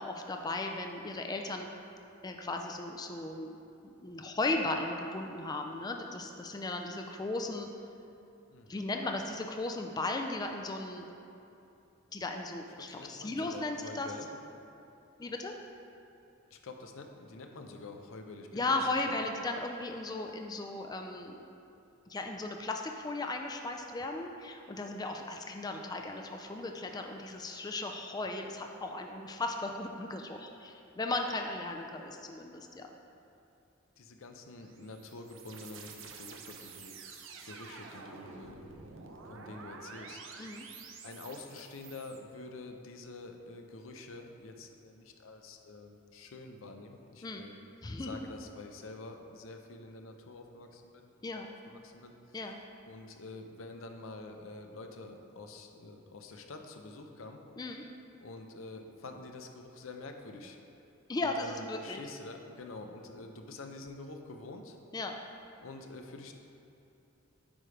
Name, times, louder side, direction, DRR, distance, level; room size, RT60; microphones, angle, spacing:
voice 1, 0.0-1.7 2.2-3.5 3.8-7.7 8.7-11.1 12.1-14.1 15.2-15.5 18.5-21.4 22.1-32.9 40.4-40.7 47.2-47.5 47.8-48.2 51.2-51.5 52.3-52.6 57.6-57.8 61.1-62.0 64.9-65.1, left 2 dB, 20° left, 3 dB, 0.3 m, -36 dB
voice 2, 8.5-8.8 12.8-14.3 16.5-18.8 19.0-19.2 34.0-37.0 37.4-38.6 39.3-40.6 41.0-47.6 48.0-52.4 52.9-57.4 58.2-60.6 61.2-64.8 65.6-66.3, left 2 dB, 85° left, 4 dB, 0.6 m, -47 dB
sound 1, 34.6-42.2, right 4 dB, 75° right, 0.6 m, -49 dB
8.9 x 3.3 x 4.9 m, 2.8 s
head